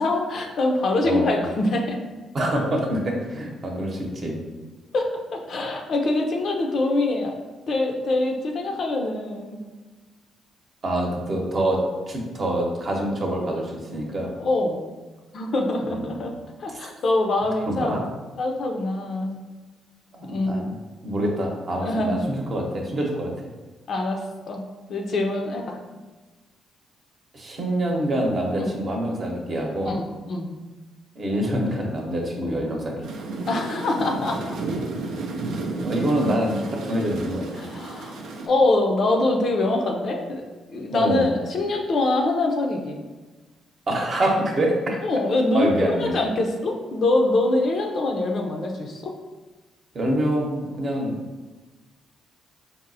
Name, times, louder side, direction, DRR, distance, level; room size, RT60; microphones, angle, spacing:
voice 1, 0.0-2.0 4.9-7.3 7.7-9.6 14.4-14.8 15.3-16.3 16.6-18.1 18.4-19.4 20.2-20.6 21.8-22.3 23.9-24.6 24.9-25.8 28.6-28.7 29.8-30.5 33.5-34.6 37.6-38.2 38.5-40.4 40.7-43.0 45.0-49.1, left 2 dB, 60° left, 2 dB, 0.5 m, -24 dB
voice 2, 1.0-1.4 2.3-4.4 10.8-11.8 12.1-14.3 15.9-16.3 16.7-16.8 17.7-18.0 20.1-20.7 21.0-23.3 27.3-29.9 31.2-33.0 35.8-37.5 40.9-41.3 43.9-45.0 45.5-46.1 49.9-51.2, right 1 dB, 50° right, 0 dB, 0.8 m, -25 dB
sound 1, 33.0-38.5, right 3 dB, 75° right, 0.4 m, -32 dB
4.1 x 2.0 x 2.6 m, 1.3 s
supercardioid pair, 60°, 0 cm